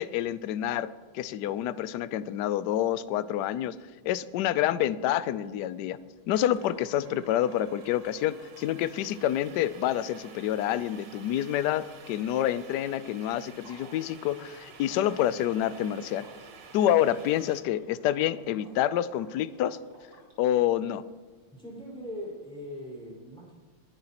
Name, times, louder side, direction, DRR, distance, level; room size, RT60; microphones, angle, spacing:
voice 1, 0.0-3.8 4.0-6.0 6.3-16.3 16.7-19.8 20.4-21.0, left 12 dB, 75° left, 15 dB, 0.9 m, -28 dB
sound 1, 6.3-17.6, right 5 dB, 75° right, 2.1 m, -51 dB
Water / Liquid, 13.6-20.3, right 1 dB, 50° right, 5.4 m, -55 dB
voice 2, 21.5-23.6, equal, ahead, -4 dB, 4.8 m, -40 dB
20.5 x 13.0 x 2.9 m, 1.5 s
omnidirectional pair, 2.3 m